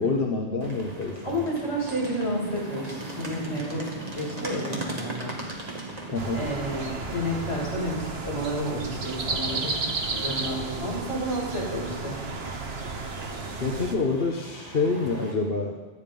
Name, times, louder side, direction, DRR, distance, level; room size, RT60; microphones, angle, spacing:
voice 1, 0.0-1.5 6.1-6.5 10.8-10.9 13.6-15.8, left 3 dB, 55° left, 1 dB, 1.4 m, -27 dB
sound 1, 0.6-15.3, right 1 dB, 35° right, 2.3 m, -40 dB
voice 2, 1.2-5.3 6.3-9.8 10.1-12.2, equal, 75° left, -6 dB, 6.9 m, -30 dB
sound 2, 6.2-14.0, right 3 dB, 60° right, 1.6 m, -33 dB
18.5 x 13.5 x 5.5 m, 1.2 s
omnidirectional pair, 1.2 m